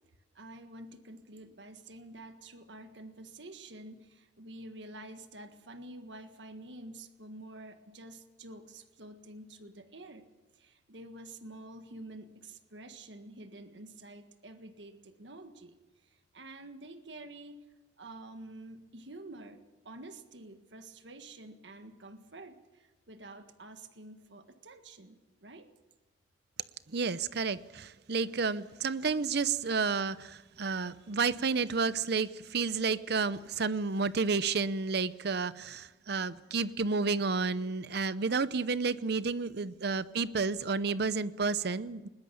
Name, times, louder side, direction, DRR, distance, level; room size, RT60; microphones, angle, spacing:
voice 1, 0.3-10.3 10.5-17.6 18.0-25.7 30.5-30.7 36.0-36.6, right 2 dB, 85° right, 8 dB, 1.7 m, -49 dB
voice 2, 26.9-42.1, right 4 dB, 65° right, 15 dB, 0.7 m, -31 dB
20.5 x 20.0 x 7.0 m, 1.1 s
head